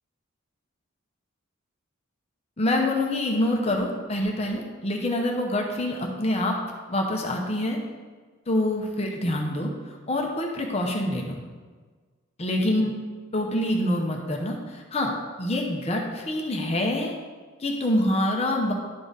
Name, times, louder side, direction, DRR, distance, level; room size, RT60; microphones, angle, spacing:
voice 1, 2.6-7.8 8.5-11.4 12.4-12.9 13.3-15.1 15.4-17.1 17.6-18.7, left 1 dB, 30° left, 1 dB, 0.7 m, -26 dB
11.5 x 3.8 x 3.9 m, 1.4 s
head